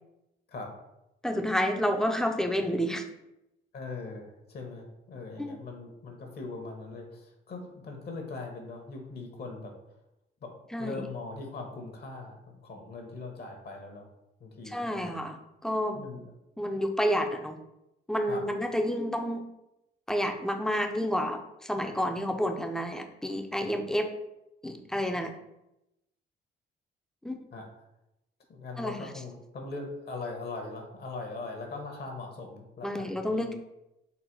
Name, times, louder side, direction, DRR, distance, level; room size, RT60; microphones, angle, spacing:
voice 1, 1.2-3.0 5.4-5.6 10.7-11.0 14.7-16.0 16.6-17.6 18.1-19.4 20.1-24.1 24.6-25.3 27.2-27.4 28.8-29.1 32.8-33.5, equal, 5° left, 4 dB, 0.5 m, -30 dB
voice 2, 3.7-9.7 10.4-10.5 10.8-14.1 14.4-15.2 15.9-16.3 18.3-18.4 27.5-27.7 28.5-33.5, left 3 dB, 55° left, 3 dB, 0.9 m, -40 dB
4.0 x 2.0 x 4.4 m, 0.89 s
cardioid pair, 90°, 20 cm